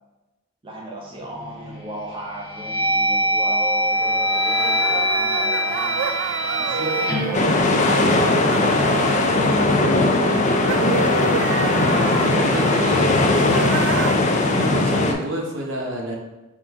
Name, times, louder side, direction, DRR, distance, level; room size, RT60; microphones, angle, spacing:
voice 1, 0.6-6.0 6.6-8.9 9.1-10.9, right 1 dB, 25° right, -3 dB, 0.6 m, -34 dB
sound 1, 1.4-1.8 2.3-8.5, equal, 15° left, 0.9 m, -23 dB
sound 2, 3.9-14.2, right 6 dB, 85° right, 0.3 m, -29 dB
sound 3, 7.3-15.1, left 2 dB, 35° left, 0.4 m, -19 dB
voice 2, 12.1-13.4 14.3-16.2, right 1 dB, 65° right, 0 dB, 0.8 m, -28 dB
3.7 x 2.6 x 4.5 m, 1.1 s
head